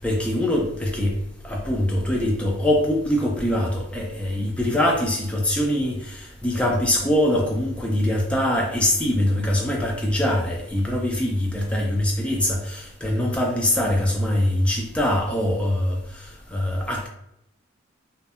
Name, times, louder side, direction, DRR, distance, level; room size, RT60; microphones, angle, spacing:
voice 1, 0.0-1.1 1.4-16.0 16.5-17.1, left 1 dB, 5° left, -1 dB, 0.3 m, -23 dB
2.6 x 2.0 x 2.3 m, 0.76 s
head